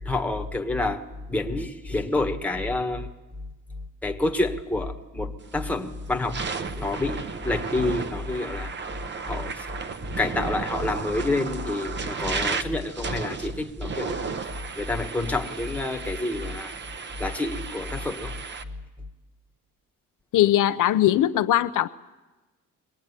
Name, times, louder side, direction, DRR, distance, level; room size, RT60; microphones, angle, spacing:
voice 1, 0.0-1.0 1.3-3.1 4.0-6.4 6.7-8.7 9.3-9.6 10.2-14.1 14.8-16.8 17.2-18.4, left 2 dB, 5° left, 4 dB, 1.4 m, -28 dB
sound 1, 5.5-5.7 6.2-18.6, right 5 dB, 35° right, 1.1 m, -34 dB
voice 2, 20.3-21.9, left 13 dB, 70° left, 11 dB, 0.7 m, -20 dB
23.0 x 19.0 x 9.8 m, 1.1 s
cardioid pair, 170°, 33 cm